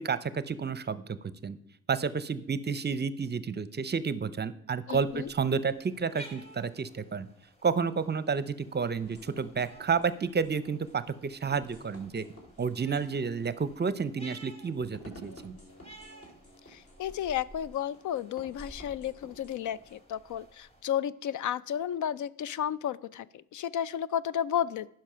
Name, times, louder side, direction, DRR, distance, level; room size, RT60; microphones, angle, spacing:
voice 1, 0.0-1.6 1.9-7.3 7.6-12.3 12.6-15.6, right 5 dB, 30° right, 16 dB, 0.7 m, -31 dB
voice 2, 4.9-5.3 16.7-24.9, left 10 dB, 55° left, 19 dB, 0.4 m, -32 dB
sound 1, 4.9-20.8, right 1 dB, 15° left, 2.2 m, -54 dB
sound 2, 9.0-20.0, equal, 40° left, 3.0 m, -53 dB
10.0 x 5.8 x 5.6 m, 0.76 s
cardioid pair, 80°, 35 cm